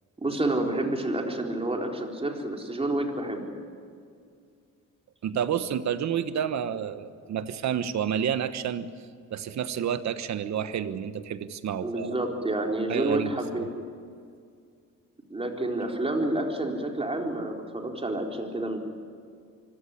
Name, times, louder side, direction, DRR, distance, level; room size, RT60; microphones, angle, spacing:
voice 1, 0.2-3.5 11.8-13.7 15.3-18.8, right 1 dB, 20° right, 2 dB, 3.9 m, -29 dB
voice 2, 5.2-8.9 9.3-12.1 12.9-13.7, right 8 dB, 65° right, 12 dB, 1.3 m, -30 dB
24.5 x 16.0 x 9.8 m, 2.2 s
cardioid pair, 90°, 30 cm